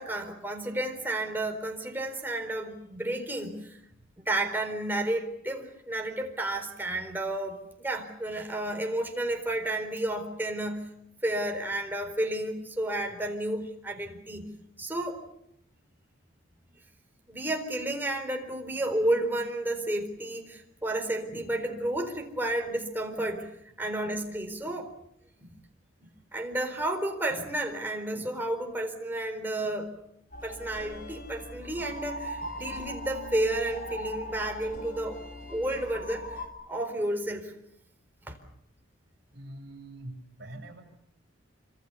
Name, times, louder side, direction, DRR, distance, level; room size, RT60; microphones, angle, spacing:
voice 1, 0.0-3.8 4.3-10.9 11.2-15.2 17.3-23.5 23.8-24.9 25.4-25.5 26.0-30.0 30.4-35.2 35.5-36.2 36.7-37.5 38.3-38.4, right 1 dB, 10° right, 3 dB, 4.1 m, -31 dB
sound 1, 30.3-36.5, left 1 dB, 45° left, 3.4 m, -40 dB
voice 2, 39.3-40.8, right 1 dB, 55° right, 0 dB, 7.2 m, -44 dB
27.5 x 26.0 x 7.0 m, 0.75 s
head